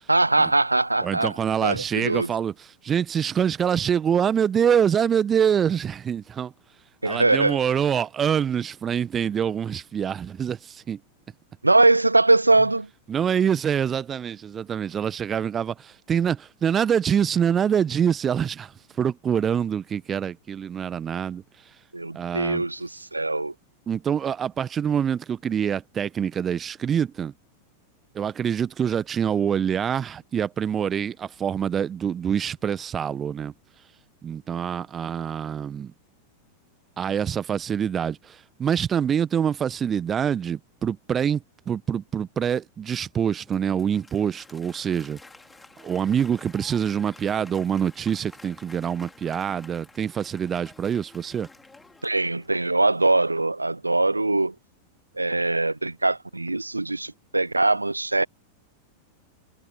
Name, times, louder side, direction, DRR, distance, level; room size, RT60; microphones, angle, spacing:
voice 1, 0.1-1.3 1.6-2.3 7.0-7.6 11.6-12.9 21.9-23.5 52.0-54.5 55.2-58.3, right 2 dB, 85° right, 0.5 m, -22 dB
voice 2, 1.0-6.5 7.0-11.0 13.1-21.4 22.1-22.6 23.9-27.3 28.1-33.5 34.2-35.9 37.0-45.2 45.8-51.5, right 8 dB, 25° right, 1.5 m, -25 dB
Applause, 43.3-52.8, left 3 dB, 10° left, 4.4 m, -51 dB
figure-of-eight pair, 90°, 0 cm